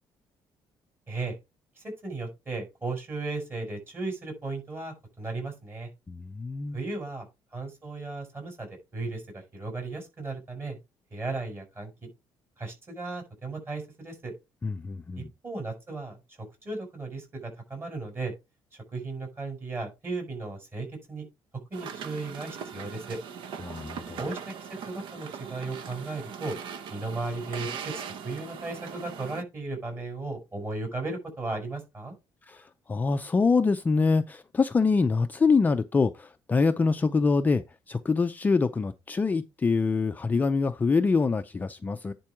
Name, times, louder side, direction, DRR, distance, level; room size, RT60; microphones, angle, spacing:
voice 1, 1.8-5.9 6.7-7.3 7.5-8.7 8.9-10.8 11.1-12.1 12.6-14.3 15.2-18.3 18.9-21.3 21.7-23.2 24.2-26.6 26.9-27.9 28.2-32.1, right 3 dB, 25° right, 6.0 m, -35 dB
voice 2, 6.1-6.8 14.6-15.3 23.6-24.2 32.5-42.1, left 4 dB, 20° left, 0.5 m, -25 dB
sound 1, 21.7-29.4, right 7 dB, 65° right, 0.9 m, -40 dB
10.5 x 4.5 x 4.6 m
cardioid pair, 150°, 9 cm